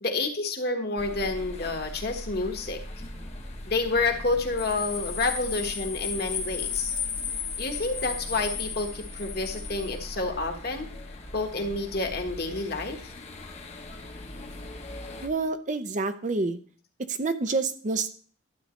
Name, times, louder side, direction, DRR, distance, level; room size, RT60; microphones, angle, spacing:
voice 1, 0.0-2.8 3.7-6.9 7.6-10.9 11.3-13.1, left 3 dB, 50° left, 4 dB, 1.3 m, -29 dB
sound 1, 1.0-15.3, left 1 dB, 30° left, 0.9 m, -41 dB
sound 2, 4.6-10.0, left 7 dB, 75° left, 2.0 m, -34 dB
voice 2, 15.2-16.6 17.1-18.1, right 3 dB, 35° right, 9 dB, 0.5 m, -28 dB
12.0 x 8.5 x 3.1 m, 0.43 s
head